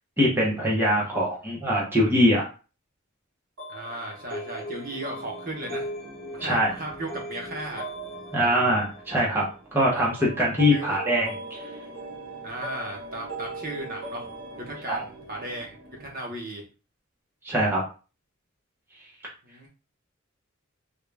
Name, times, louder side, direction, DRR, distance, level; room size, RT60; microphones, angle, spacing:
voice 1, 0.2-2.4 6.4-6.7 8.3-11.6 14.9-15.0 17.4-17.8, equal, 10° right, -5 dB, 0.8 m, -23 dB
sound 1, 3.6-16.2, right 1 dB, 65° right, 1.7 m, -39 dB
voice 2, 3.7-5.9 6.3-7.8 10.7-11.0 12.4-14.3 14.7-15.0 15.3-15.7 16.0-16.6 19.4-19.7, right 1 dB, 45° right, -1 dB, 0.9 m, -35 dB
3.7 x 2.3 x 3.3 m, 0.33 s
head